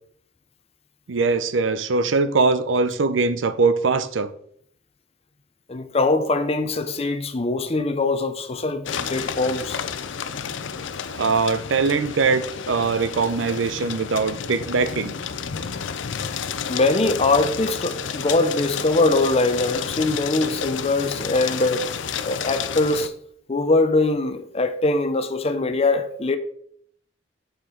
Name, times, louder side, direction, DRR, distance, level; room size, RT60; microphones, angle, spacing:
voice 1, 1.1-4.3 11.1-15.1, right 4 dB, 80° right, 0.6 m, -22 dB
voice 2, 5.7-9.8 16.7-21.9 22.2-23.1 23.5-26.4, left 2 dB, 35° left, 0.6 m, -22 dB
sound 1, 8.9-23.1, left 7 dB, 75° left, 0.5 m, -31 dB
6.8 x 6.7 x 3.8 m
head